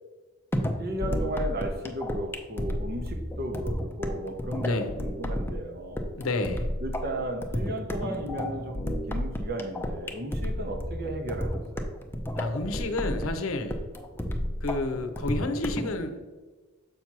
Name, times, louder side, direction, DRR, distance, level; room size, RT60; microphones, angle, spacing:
sound 1, 0.5-15.9, equal, 10° left, 0.5 m, -32 dB
voice 1, 0.8-6.1 6.8-11.9, right 1 dB, 50° right, 0.9 m, -35 dB
voice 2, 4.5-4.9 6.1-6.7 12.4-13.9 14.6-16.2, left 2 dB, 75° left, 0.7 m, -30 dB
7.0 x 2.9 x 5.9 m
head